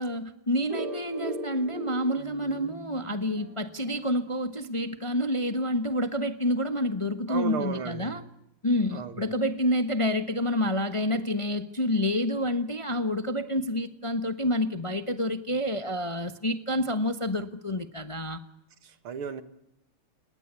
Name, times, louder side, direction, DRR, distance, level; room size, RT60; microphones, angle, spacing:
voice 1, 0.0-8.2 8.6-18.4, left 1 dB, 20° left, 0.9 m, -28 dB
sound 1, 0.7-5.3, right 2 dB, 25° right, 2.8 m, -39 dB
voice 2, 7.3-8.2 8.9-9.2 18.8-19.4, right 6 dB, 80° right, 2.5 m, -34 dB
30.0 x 18.5 x 8.3 m
omnidirectional pair, 2.3 m